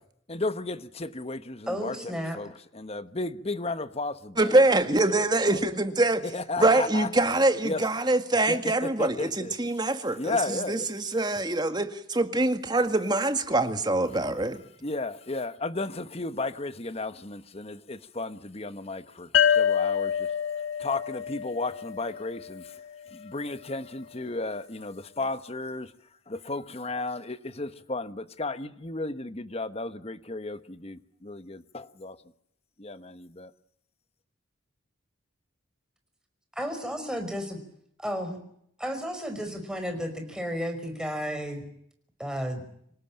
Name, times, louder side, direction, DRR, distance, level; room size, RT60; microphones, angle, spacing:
voice 1, 0.3-4.6 5.1-5.6 6.2-7.3 7.6-7.9 8.5-9.5 10.2-10.9 14.8-20.3 20.8-25.9 26.3-32.2 32.8-33.5, left 2 dB, 30° left, 1.2 m, -34 dB
voice 2, 1.7-2.4 36.5-37.6 38.0-38.4 38.8-41.6 42.2-42.6, equal, 5° right, 5.4 m, -32 dB
voice 3, 4.4-6.2 6.6-10.4 10.7-14.6, right 2 dB, 20° right, 1.9 m, -24 dB
sound 1, 19.3-22.8, left 8 dB, 85° left, 1.6 m, -26 dB
26.0 x 18.5 x 8.9 m
head